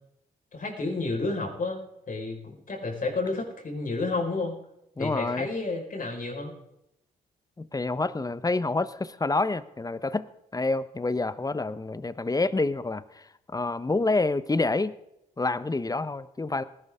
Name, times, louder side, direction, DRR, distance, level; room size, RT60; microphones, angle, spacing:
voice 1, 0.5-4.5 5.0-6.5, left 3 dB, 45° left, 1 dB, 5.0 m, -31 dB
voice 2, 5.0-5.5 7.6-10.3 10.5-14.9 15.4-16.6, left 3 dB, 20° left, 16 dB, 1.0 m, -28 dB
19.0 x 11.0 x 3.7 m, 0.83 s
hypercardioid pair, 40°, 19 cm